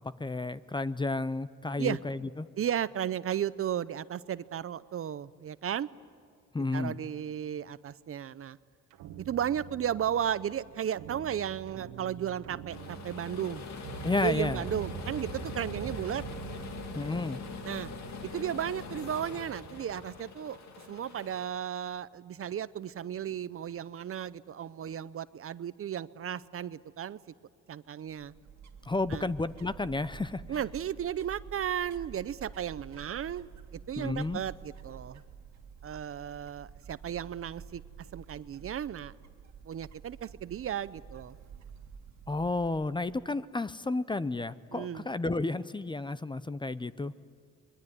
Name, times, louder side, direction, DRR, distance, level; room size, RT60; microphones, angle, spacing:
voice 1, 0.2-2.5 6.5-7.0 14.0-14.6 17.0-17.4 28.9-30.6 34.0-34.4 42.3-47.1, left 2 dB, 15° left, 15 dB, 0.7 m, -32 dB
voice 2, 2.6-5.9 6.7-8.6 9.3-13.6 14.2-16.2 17.6-17.9 18.2-20.6 20.9-27.2 27.7-28.3 29.1-29.3 30.5-35.2 35.8-37.8 38.1-39.1 39.6-41.3 44.7-45.0, right 9 dB, 45° right, 16 dB, 0.7 m, -34 dB
sound 1, 8.9-20.2, right 8 dB, 90° right, 1.3 m, -45 dB
sound 2, 12.7-21.5, left 5 dB, 65° left, 2.3 m, -43 dB
sound 3, 28.1-43.3, right 7 dB, 60° right, 1.9 m, -50 dB
27.0 x 22.0 x 9.5 m, 2.2 s
cardioid pair, 90°, 30 cm